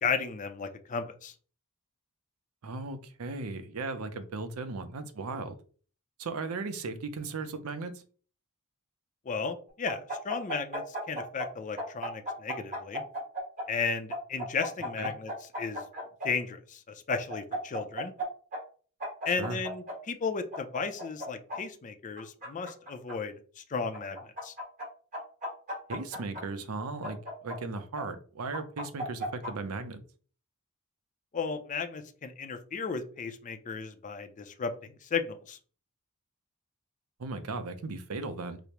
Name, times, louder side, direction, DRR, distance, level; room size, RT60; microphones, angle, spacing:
voice 1, 0.0-1.3 9.3-13.0 13.7-15.3 15.6-15.8 16.2-16.8 17.1-18.1 19.3-24.5 31.3-34.7 35.0-35.6, left 5 dB, 35° left, 0.4 m, -34 dB
voice 2, 2.6-5.5 6.2-8.0 15.0-15.1 19.3-19.6 25.9-30.0 37.2-38.6, right 3 dB, 80° right, 0.5 m, -37 dB
sound 1, 9.9-11.5 11.8-13.7 14.1-16.3 17.1-18.3 18.5-18.6 19.0-20.0 20.5-21.6 22.2-23.1 23.9-24.9 25.1-26.4 27.0-28.0 28.5-29.5, equal, 40° right, 1.5 m, -35 dB
4.9 x 2.0 x 2.9 m
head